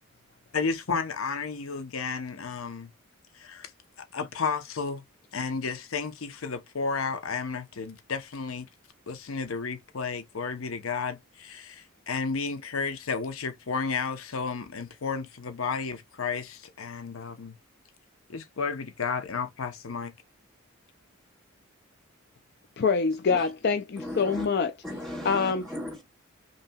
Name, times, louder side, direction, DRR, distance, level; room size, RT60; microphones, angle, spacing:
voice 1, 0.5-2.9 3.3-3.7 4.0-5.0 5.3-8.7 9.1-17.5 18.3-20.1, left 5 dB, 85° left, 0.8 m, -32 dB
voice 2, 22.8-24.7 25.2-25.6, left 5 dB, 50° left, 0.4 m, -25 dB
voice 3, 24.0-24.5 24.8-26.0, left 1 dB, ahead, 2.4 m, -36 dB
5.4 x 3.0 x 2.2 m
head